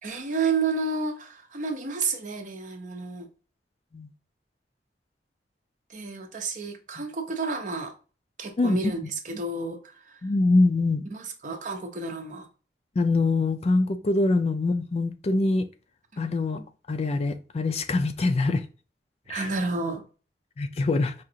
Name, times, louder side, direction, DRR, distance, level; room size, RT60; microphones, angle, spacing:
voice 1, 0.0-3.3 5.9-7.9 8.4-10.2 11.1-12.5 16.1-16.2 19.3-20.0, right 4 dB, 45° right, 0.8 m, -31 dB
voice 2, 10.2-11.0 13.0-15.6 16.2-18.6 19.3-19.4 20.6-21.1, left 2 dB, 35° left, 0.4 m, -24 dB
4.9 x 2.4 x 2.7 m
head